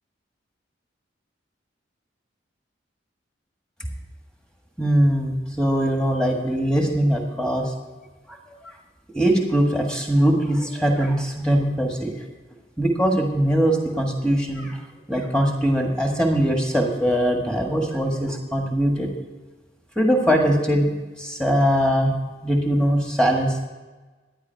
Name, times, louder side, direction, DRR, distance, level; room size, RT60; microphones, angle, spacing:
voice 1, 4.8-7.7 9.1-12.1 12.8-14.8 15.1-19.1 19.9-22.1 22.4-23.6, equal, 5° left, 1 dB, 1.6 m, -21 dB
12.0 x 9.7 x 4.6 m, 1.3 s
head